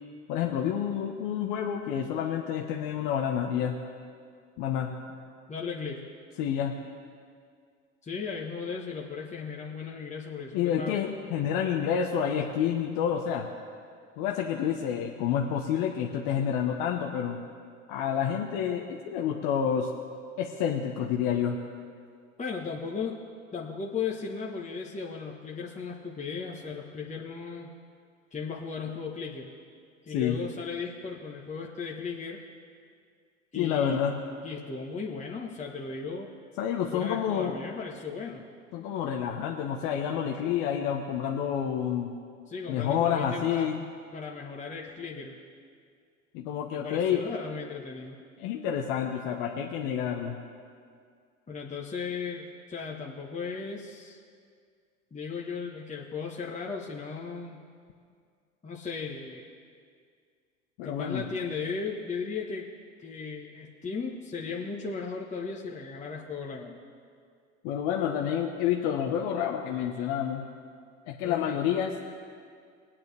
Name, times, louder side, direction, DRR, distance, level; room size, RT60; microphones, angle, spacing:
voice 1, 0.3-3.8 4.6-4.9 6.4-6.7 10.5-13.5 14.2-17.4 17.9-19.9 20.4-21.6 30.1-30.4 33.5-34.2 36.6-37.6 38.7-42.1 42.7-43.8 46.3-47.2 48.4-50.4 60.8-61.2 67.6-70.5 71.1-72.0, left 8 dB, 60° left, 1 dB, 1.2 m, -29 dB
voice 2, 5.5-6.1 8.0-11.0 22.4-23.2 23.5-27.7 28.3-29.5 30.0-32.4 33.5-34.0 34.4-36.3 36.9-38.4 38.8-39.0 42.5-43.7 44.1-45.4 46.7-48.2 51.5-54.2 55.1-57.6 58.6-59.5 60.8-62.7 63.0-66.8 71.2-71.5, left 5 dB, 20° left, -2 dB, 1.4 m, -36 dB
21.5 x 8.9 x 3.5 m, 2.1 s
hypercardioid pair, 70°, 39 cm